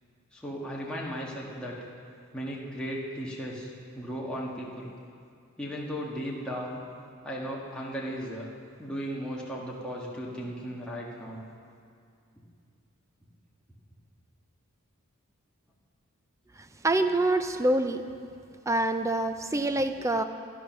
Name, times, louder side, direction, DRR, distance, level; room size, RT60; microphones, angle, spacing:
voice 1, 0.3-1.8 2.3-4.9 5.6-6.8 7.2-8.5 8.8-11.4, equal, 5° left, -5 dB, 1.6 m, -36 dB
voice 2, 16.8-18.0 18.7-20.2, right 2 dB, 15° right, 9 dB, 0.5 m, -25 dB
13.0 x 11.0 x 6.0 m, 2.3 s
head